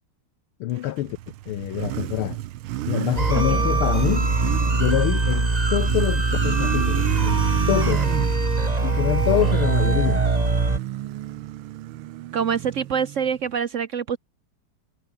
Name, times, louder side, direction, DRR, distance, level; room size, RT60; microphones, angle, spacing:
voice 1, 0.6-1.2 1.5-2.4 2.9-4.3 4.8-8.1 8.8-10.2, left 14 dB, 80° left, 1.7 m, -26 dB
Motorcycle, 0.9-13.5, right 15 dB, 80° right, 1.6 m, -30 dB
sound 1, 3.2-10.8, right 2 dB, 20° right, 2.1 m, -22 dB
voice 2, 3.3-3.7 12.3-14.2, right 7 dB, 65° right, 0.7 m, -25 dB
omnidirectional pair, 2.4 m